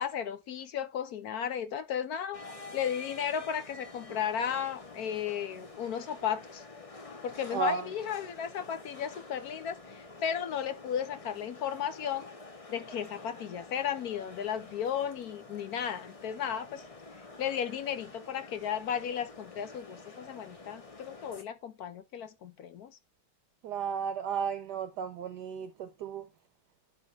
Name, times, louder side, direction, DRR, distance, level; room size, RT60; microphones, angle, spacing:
voice 1, 0.0-2.4 2.7-6.6 7.2-12.3 12.7-16.8 17.4-23.0, left 8 dB, 65° left, 1.0 m, -34 dB
sound 1, 2.3-21.4, left 3 dB, 40° left, 0.5 m, -49 dB
voice 2, 7.5-7.9 23.6-26.2, right 5 dB, 70° right, 1.1 m, -33 dB
11.5 x 3.8 x 3.3 m
omnidirectional pair, 2.2 m